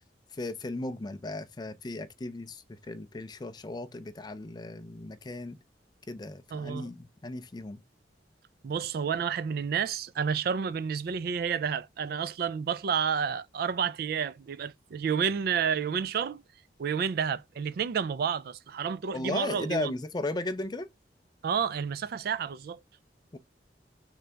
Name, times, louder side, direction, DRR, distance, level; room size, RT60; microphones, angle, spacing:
voice 1, 0.3-5.6 6.1-7.8 19.1-20.9 23.3-23.4, left 2 dB, 25° left, 0.4 m, -36 dB
voice 2, 6.5-6.9 8.6-16.4 16.8-19.9 21.4-22.8, right 7 dB, 55° right, 0.3 m, -30 dB
3.8 x 3.3 x 3.3 m
head